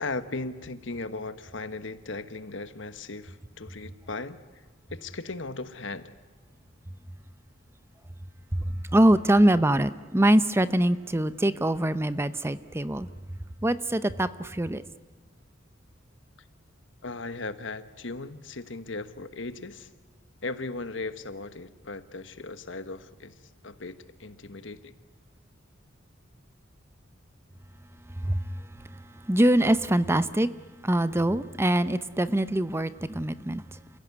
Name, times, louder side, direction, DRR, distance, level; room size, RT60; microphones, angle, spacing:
voice 1, 0.0-6.1 17.0-19.9 20.4-24.9, left 3 dB, 70° left, 11 dB, 1.3 m, -37 dB
voice 2, 8.6-13.1 13.6-14.8 28.2-28.5 29.3-30.5 30.8-33.6, right 1 dB, 15° right, 14 dB, 0.7 m, -23 dB
29.0 x 16.5 x 9.6 m, 1.4 s
head